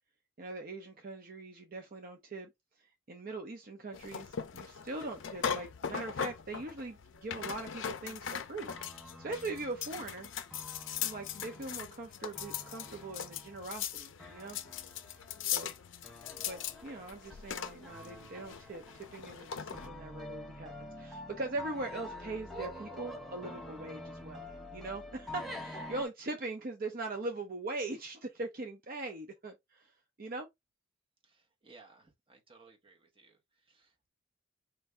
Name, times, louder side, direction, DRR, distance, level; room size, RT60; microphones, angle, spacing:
voice 1, 0.4-2.5 2.8-10.3 11.0-14.6 15.4-15.7 16.4-29.9 30.2-30.5, right 2 dB, 45° right, 0.6 m, -41 dB
sound 1, 3.9-19.9, left 8 dB, 60° left, 0.5 m, -40 dB
sound 2, 8.7-26.0, left 1 dB, ahead, 0.7 m, -47 dB
voice 2, 31.2-34.1, right 4 dB, 25° right, 0.9 m, -60 dB
4.5 x 2.6 x 3.3 m
head